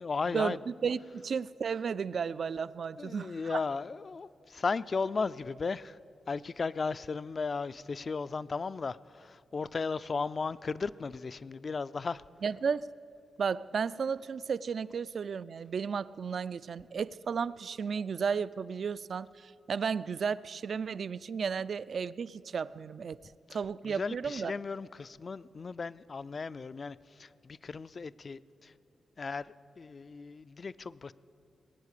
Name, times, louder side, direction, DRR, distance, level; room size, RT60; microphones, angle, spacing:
voice 1, 0.0-0.6 3.0-6.0 6.3-12.2 23.5-23.6 23.8-28.7 29.2-31.1, left 4 dB, 40° left, 17 dB, 0.3 m, -35 dB
voice 2, 0.8-3.6 12.4-12.9 13.4-23.2 23.5-24.5, right 6 dB, 55° right, 18 dB, 0.3 m, -33 dB
19.5 x 8.8 x 8.3 m, 2.5 s
wide cardioid pair, 130°, 0 cm